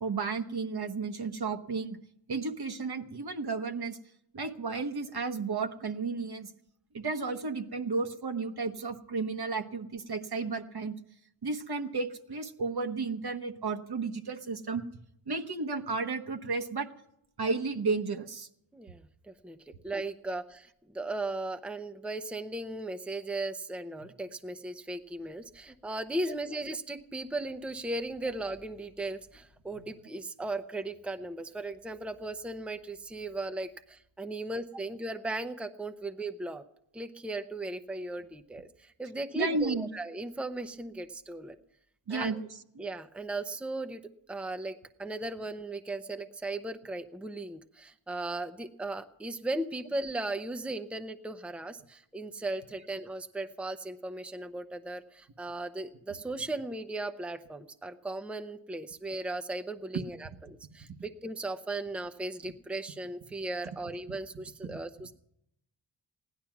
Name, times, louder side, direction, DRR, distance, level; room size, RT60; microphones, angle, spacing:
voice 1, 0.0-2.0 2.3-4.0 4.3-6.5 6.9-10.9 11.4-14.8 15.3-16.9 17.4-18.5 24.0-24.1 26.2-26.4 29.7-29.9 39.3-39.9 42.1-42.5 42.7-42.8 56.3-56.4 59.9-60.4 62.4-62.5 63.6-63.8 64.1-64.8, right 4 dB, 50° right, 6 dB, 1.3 m, -33 dB
voice 2, 18.7-19.6 19.8-36.6 36.9-41.6 42.1-42.5 42.8-65.1, right 2 dB, ahead, 7 dB, 0.8 m, -37 dB
16.0 x 11.5 x 6.0 m, 0.76 s
cardioid pair, 60°, 49 cm